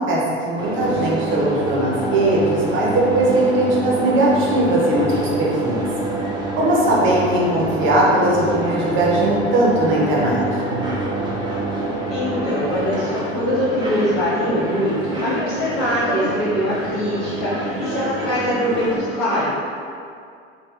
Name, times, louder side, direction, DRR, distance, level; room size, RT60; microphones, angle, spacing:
voice 1, 0.0-5.9 6.6-10.9, right 1 dB, 35° right, -4 dB, 0.8 m, -19 dB
sound 1, 0.6-19.0, right 1 dB, 15° right, 0.5 m, -26 dB
voice 2, 12.1-19.5, equal, 60° left, -12 dB, 0.9 m, -23 dB
3.0 x 2.6 x 2.3 m, 2.3 s
figure-of-eight pair, 75°, 33 cm